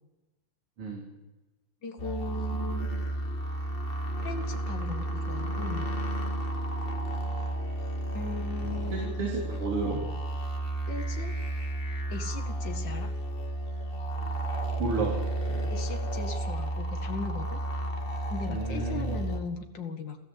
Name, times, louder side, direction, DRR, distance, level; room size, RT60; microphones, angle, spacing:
voice 1, 1.8-2.9 4.2-5.9 8.1-9.3 10.9-11.3 12.1-13.1 15.7-17.6 18.3-20.2, left 4 dB, 45° left, 6 dB, 1.6 m, -38 dB
sound 1, 2.0-19.4, right 1 dB, 85° left, 0.5 m, -32 dB
voice 2, 8.6-10.0 14.8-15.2 15.5-15.6 18.5-19.2, right 3 dB, 35° right, 0 dB, 3.8 m, -32 dB
29.0 x 14.0 x 8.7 m, 1.1 s
omnidirectional pair, 4.8 m